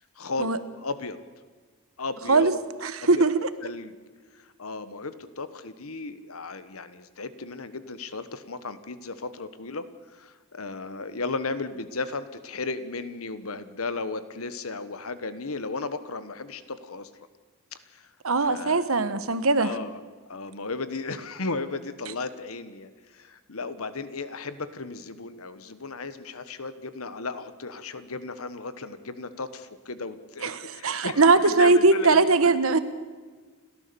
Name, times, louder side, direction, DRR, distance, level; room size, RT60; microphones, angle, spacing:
voice 1, 0.2-1.2 2.0-2.5 3.0-3.2 3.6-3.9 4.3-17.1 17.7-18.1 18.4-18.9 19.6-20.0 20.3-32.3, left 3 dB, 90° left, 12 dB, 1.3 m, -35 dB
voice 2, 2.8-3.5 18.2-19.7 30.4-32.8, right 3 dB, 75° right, 12 dB, 1.3 m, -20 dB
29.5 x 13.0 x 7.0 m, 1.5 s
head